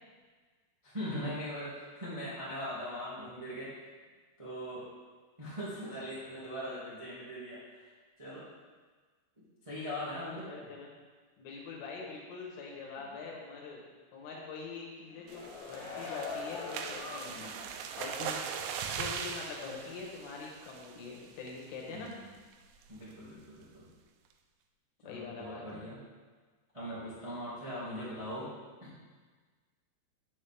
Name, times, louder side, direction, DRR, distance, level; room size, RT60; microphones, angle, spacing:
voice 1, 0.8-3.7 4.4-4.8 5.4-8.5 9.4-10.5 17.3-17.6 21.9-22.3 22.9-23.8 25.0-26.0 26.7-28.5, equal, 50° right, -10 dB, 0.3 m, -41 dB
voice 2, 10.4-10.9 11.4-13.8 14.1-17.5 18.0-18.4 18.8-22.1 25.0-25.8, left 4 dB, 60° left, -3 dB, 2.8 m, -44 dB
sound 1, 15.0-17.8 18.2-18.3, left 4 dB, 75° left, 3.8 m, -43 dB
sound 2, 15.3-21.1 21.5-21.7 22.1-22.2 22.5-22.8, right 7 dB, 85° right, 2.7 m, -40 dB
9.4 x 7.4 x 3.6 m, 1.4 s
omnidirectional pair, 5.6 m